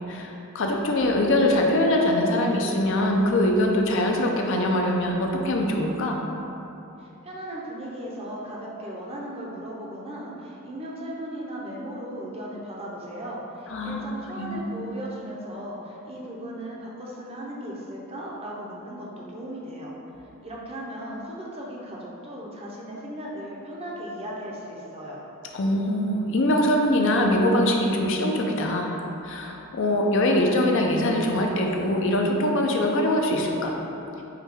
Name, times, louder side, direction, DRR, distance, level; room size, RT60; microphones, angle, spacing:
voice 1, 0.1-6.2 13.7-14.0 14.4-14.6 25.5-28.9 29.2-33.8, left 1 dB, 60° left, 1 dB, 0.4 m, -23 dB
voice 2, 7.0-19.9 20.4-25.2, right 1 dB, 25° right, -3 dB, 0.6 m, -37 dB
4.9 x 2.2 x 4.5 m, 2.9 s
head